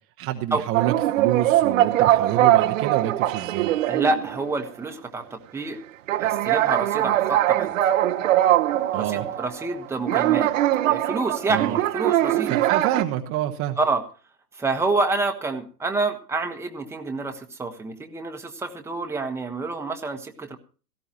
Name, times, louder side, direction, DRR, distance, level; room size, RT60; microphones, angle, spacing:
voice 1, 0.2-3.7 8.9-9.3 11.5-11.8 12.5-13.8, right 13 dB, 25° right, 3 dB, 1.1 m, -27 dB
sound 1, 0.7-4.6 4.9-5.0 6.1-9.8 10.1-13.0, right 13 dB, 50° right, 1.1 m, -22 dB
voice 2, 3.9-5.8 6.2-7.7 8.9-10.5 10.8-12.6 13.8-14.0 14.6-20.6, right 3 dB, 5° right, 4 dB, 1.3 m, -28 dB
17.5 x 14.5 x 3.0 m, 0.37 s
hypercardioid pair, 115°, 49 cm